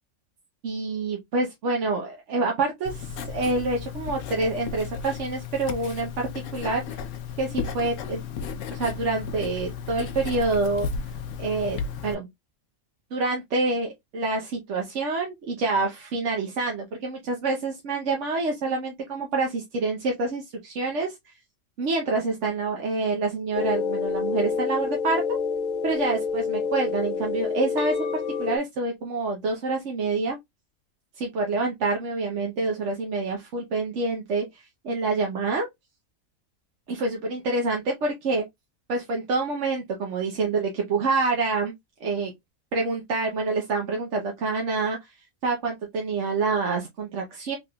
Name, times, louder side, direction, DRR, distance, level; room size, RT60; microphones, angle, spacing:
voice 1, 0.6-7.0 7.4-8.2 8.7-10.9 11.4-12.3 13.1-21.2 21.8-25.2 25.8-30.4 31.2-35.7 36.9-38.4 38.9-41.7 42.0-42.3 42.7-45.1 45.4-47.6, right 3 dB, 60° right, 1.1 m, -27 dB
Writing, 2.8-12.1, left 6 dB, 70° left, 1.0 m, -34 dB
sound 1, 23.5-28.6, left 5 dB, 90° left, 1.4 m, -27 dB
3.7 x 3.6 x 2.2 m
omnidirectional pair, 1.5 m